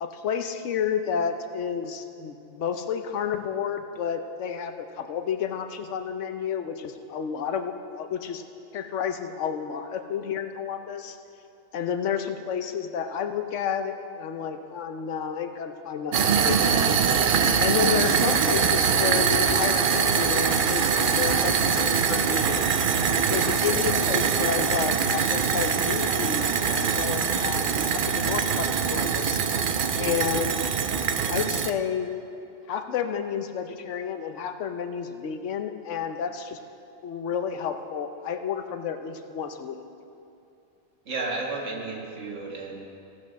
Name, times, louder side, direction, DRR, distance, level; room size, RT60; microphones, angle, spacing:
voice 1, 0.0-8.4 8.7-11.2 11.7-16.8 17.6-22.7 23.3-29.4 30.0-30.6 31.3-32.1 32.7-36.6 37.0-39.8, left 7 dB, 85° left, 7 dB, 1.1 m, -31 dB
sound 1, 16.1-31.7, right 6 dB, 55° right, 0.6 m, -23 dB
voice 2, 41.1-42.8, right 3 dB, 90° right, -1 dB, 1.9 m, -32 dB
16.5 x 6.2 x 6.3 m, 2.7 s
omnidirectional pair, 1.2 m